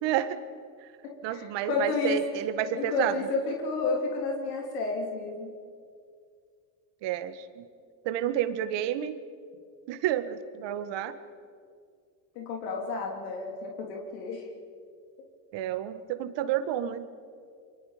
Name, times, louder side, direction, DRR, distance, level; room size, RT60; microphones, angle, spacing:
voice 1, 0.0-0.4 1.2-3.1 7.0-7.6 8.0-9.2 9.9-11.1 15.5-17.1, right 11 dB, 60° right, 11 dB, 1.7 m, -30 dB
voice 2, 1.0-2.2 2.8-5.5 12.4-14.4, left 3 dB, 85° left, 1 dB, 3.4 m, -31 dB
28.0 x 24.0 x 5.1 m, 2.2 s
supercardioid pair, 100°, 48 cm